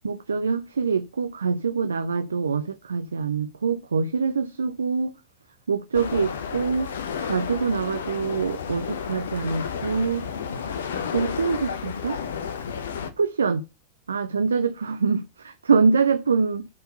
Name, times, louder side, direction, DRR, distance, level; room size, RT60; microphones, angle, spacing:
voice 1, 0.0-5.1 5.7-6.9 7.2-10.3 11.1-12.2 13.2-13.6 14.1-16.7, right 5 dB, 70° right, 0.6 m, -24 dB
sound 1, 5.9-13.1, left 7 dB, 65° left, 1.0 m, -32 dB
8.4 x 4.5 x 6.6 m
figure-of-eight pair, 90°, 0 cm